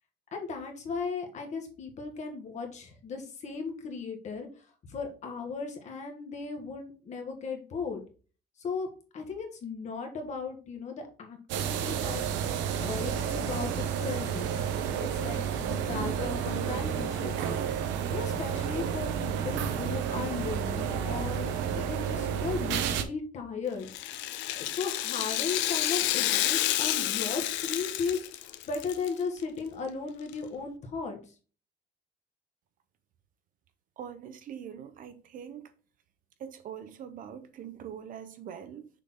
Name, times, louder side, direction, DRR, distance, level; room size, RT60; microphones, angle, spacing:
voice 1, 0.3-4.5 4.9-8.0 8.6-8.9 9.1-12.2 12.8-14.6 15.1-17.3 18.1-23.9 24.6-31.2, left 5 dB, 40° left, 1.7 m, -36 dB
sound 1, 11.5-23.0, right 8 dB, 90° right, 1.0 m, -31 dB
Rattle (instrument), 23.8-29.1 29.4-29.5 30.3-30.4, left 14 dB, 90° left, 0.7 m, -30 dB
voice 2, 34.0-35.7 36.4-38.9, right 8 dB, 45° right, 0.8 m, -43 dB
6.6 x 4.1 x 3.7 m
cardioid pair, 155°, 19 cm